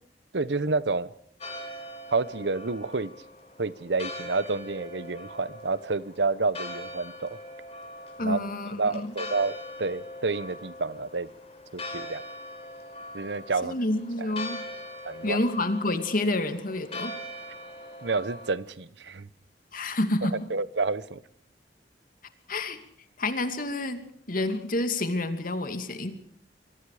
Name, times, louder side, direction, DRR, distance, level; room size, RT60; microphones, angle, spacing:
voice 1, 0.3-1.1 2.1-3.1 3.6-7.4 8.2-8.4 8.8-11.3 11.7-12.2 13.1-13.8 14.2-14.3 15.0-15.4 18.0-19.3 20.2-21.2, right 3 dB, 75° right, 17 dB, 0.9 m, -29 dB
Church bell, 1.4-18.5, left 1 dB, 35° left, 5.3 m, -41 dB
voice 2, 8.2-9.1 13.6-14.6 15.2-17.2 19.7-20.5 22.5-22.8 23.2-26.2, left 2 dB, 50° left, 8 dB, 2.6 m, -29 dB
26.0 x 23.0 x 5.0 m, 0.65 s
head